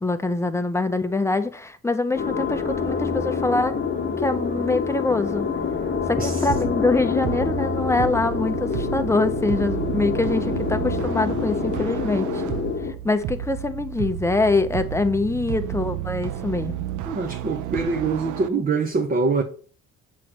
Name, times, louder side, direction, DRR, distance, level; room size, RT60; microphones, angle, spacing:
voice 1, 0.0-3.7 4.2-5.5 6.1-12.4 13.0-16.8, left 3 dB, 10° left, 0.7 m, -24 dB
sound 1, 2.1-12.9, left 5 dB, 35° left, 1.2 m, -26 dB
voice 2, 6.2-6.5 17.1-19.4, right 4 dB, 30° right, 0.9 m, -24 dB
sound 2, 6.5-18.5, right 12 dB, 75° right, 0.5 m, -32 dB
7.5 x 3.1 x 5.9 m
cardioid pair, 90°, 30 cm